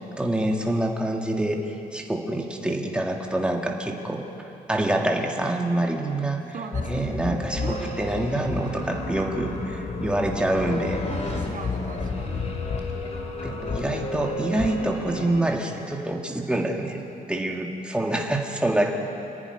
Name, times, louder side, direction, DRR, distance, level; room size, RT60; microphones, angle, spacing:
voice 1, 0.2-4.3 4.7-6.4 6.9-11.0 13.4-17.0 17.3-18.9, right 1 dB, 5° right, 1 dB, 1.9 m, -26 dB
voice 2, 6.5-7.1 7.5-8.1 11.1-12.5, right 5 dB, 55° right, 2 dB, 1.6 m, -40 dB
sound 1, 6.7-15.4, left 3 dB, 45° left, 2.9 m, -31 dB
27.5 x 10.5 x 9.9 m, 2.9 s
cardioid pair, 135°, 16 cm